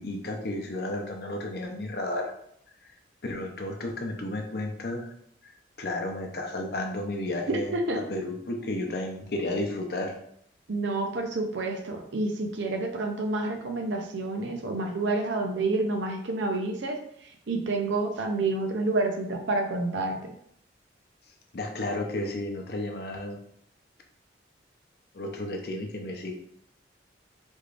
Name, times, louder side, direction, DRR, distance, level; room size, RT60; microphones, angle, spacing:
voice 1, 0.0-2.3 3.2-5.1 5.4-10.2 21.5-23.4 25.1-26.3, left 1 dB, 55° left, 2 dB, 0.6 m, -32 dB
voice 2, 7.5-8.0 10.7-17.0 17.5-20.2, right 2 dB, 80° right, 3 dB, 0.6 m, -28 dB
3.5 x 3.3 x 2.4 m, 0.69 s
head